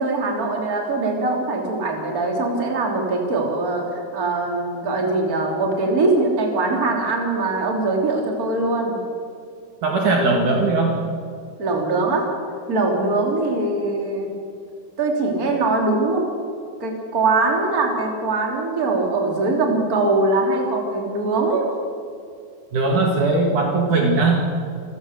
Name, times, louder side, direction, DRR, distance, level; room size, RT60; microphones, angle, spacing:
voice 1, 0.0-9.0 11.6-12.3 12.7-14.3 15.0-16.3 16.8-21.7, right 3 dB, 25° right, 0 dB, 3.1 m, -22 dB
voice 2, 9.8-11.0 22.7-24.4, right 3 dB, 55° right, 0 dB, 3.3 m, -19 dB
28.0 x 15.5 x 6.6 m, 2.4 s
omnidirectional pair, 4.5 m